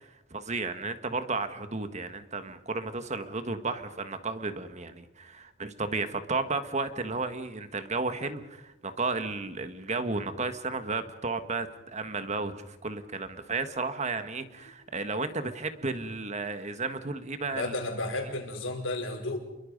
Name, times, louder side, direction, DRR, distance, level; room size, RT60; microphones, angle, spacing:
voice 1, 0.3-17.7, right 3 dB, 35° right, 9 dB, 1.5 m, -33 dB
voice 2, 17.5-19.4, left 2 dB, 85° left, 3 dB, 4.9 m, -33 dB
28.5 x 23.0 x 5.4 m, 0.96 s
head